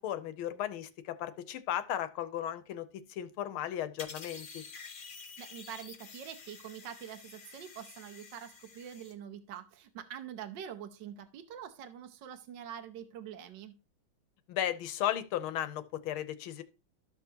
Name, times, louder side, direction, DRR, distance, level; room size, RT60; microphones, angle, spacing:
voice 1, 0.0-4.6 14.5-16.6, left 11 dB, 85° left, 1.6 m, -35 dB
sound 1, 4.0-9.1, left 5 dB, 55° left, 0.5 m, -49 dB
voice 2, 5.4-13.8, right 9 dB, 65° right, 1.4 m, -45 dB
13.0 x 6.1 x 2.8 m
omnidirectional pair, 2.3 m